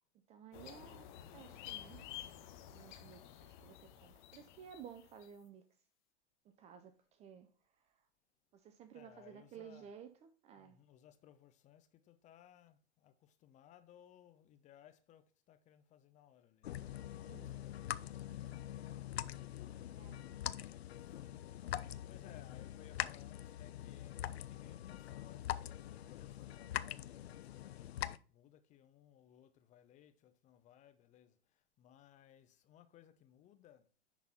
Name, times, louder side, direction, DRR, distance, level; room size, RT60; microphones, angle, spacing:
voice 1, 0.3-1.0 1.3-2.0 2.7-5.6 6.4-7.5 8.5-10.8 17.3-17.5 20.0-20.3, right 8 dB, 20° right, 0.5 m, -55 dB
sound 1, 0.5-5.4, left 11 dB, 45° left, 1.0 m, -52 dB
voice 2, 8.9-9.9 10.6-19.2 20.9-21.2 21.6-21.8 22.1-27.9 28.3-33.9, left 11 dB, 20° left, 0.6 m, -63 dB
sound 2, 16.6-28.2, left 12 dB, 65° left, 0.5 m, -44 dB
10.5 x 4.0 x 4.2 m
figure-of-eight pair, 105°, 35 cm